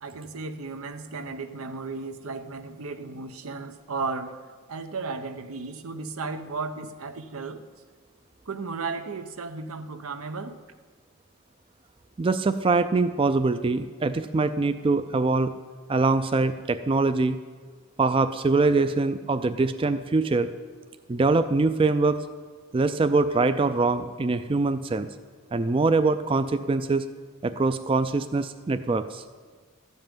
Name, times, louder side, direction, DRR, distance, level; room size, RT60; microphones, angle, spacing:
voice 1, 0.0-4.4 4.7-7.6 8.5-10.6, right 4 dB, 90° right, 9 dB, 0.8 m, -34 dB
voice 2, 12.2-15.5 15.9-17.4 18.0-20.5 21.1-22.2 22.7-25.1 25.5-27.0 27.4-29.2, right 3 dB, 25° right, 10 dB, 0.3 m, -23 dB
13.5 x 5.5 x 9.0 m, 1.5 s
head